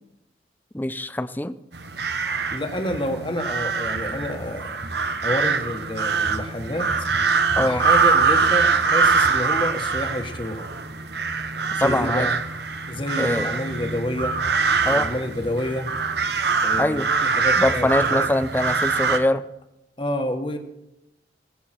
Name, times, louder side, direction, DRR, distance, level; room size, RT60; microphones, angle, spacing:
voice 1, 0.7-1.6 7.6-7.8 11.8-12.3 13.2-13.5 14.9-15.1 16.8-17.1 17.6-19.4, left 1 dB, 10° left, 13 dB, 0.5 m, -23 dB
sound 1, 1.7-19.2, right 5 dB, 65° right, 1.2 m, -23 dB
voice 2, 2.5-4.8 5.2-6.9 7.6-10.7 11.8-12.4 12.9-14.4 14.9-15.9 16.6-18.3 20.0-20.6, left 1 dB, 30° left, 5 dB, 1.6 m, -29 dB
17.0 x 15.0 x 4.5 m, 0.85 s
head